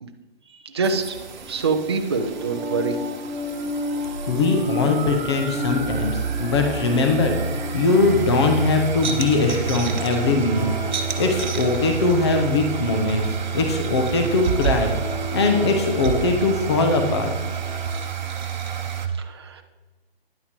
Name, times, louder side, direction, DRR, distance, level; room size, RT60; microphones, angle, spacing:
voice 1, 0.6-1.2 1.5-3.0 19.2-19.6, right 4 dB, 25° right, 4 dB, 0.5 m, -25 dB
sound 1, 0.8-19.1, right 8 dB, 45° right, 1.0 m, -29 dB
sound 2, 2.1-18.0, left 2 dB, 5° right, 1.2 m, -34 dB
voice 2, 4.3-7.4 7.7-10.7 11.1-13.3 13.5-14.9 15.3-17.3, left 3 dB, 25° left, 4 dB, 0.8 m, -21 dB
9.9 x 5.8 x 5.2 m, 1.2 s
hypercardioid pair, 170°, 32 cm